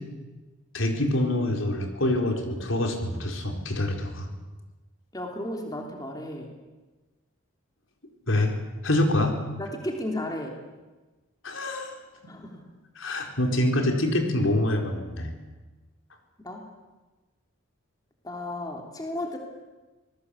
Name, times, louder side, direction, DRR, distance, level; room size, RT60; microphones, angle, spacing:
voice 1, 0.7-4.3 8.3-8.5 8.8-9.4 11.4-11.9 13.0-15.3, left 1 dB, 75° left, 3 dB, 4.3 m, -25 dB
voice 2, 5.1-6.5 9.6-10.5 12.3-12.6 16.4-16.7 18.2-19.4, left 1 dB, 20° left, 2 dB, 3.2 m, -34 dB
25.5 x 20.0 x 8.5 m, 1.2 s
head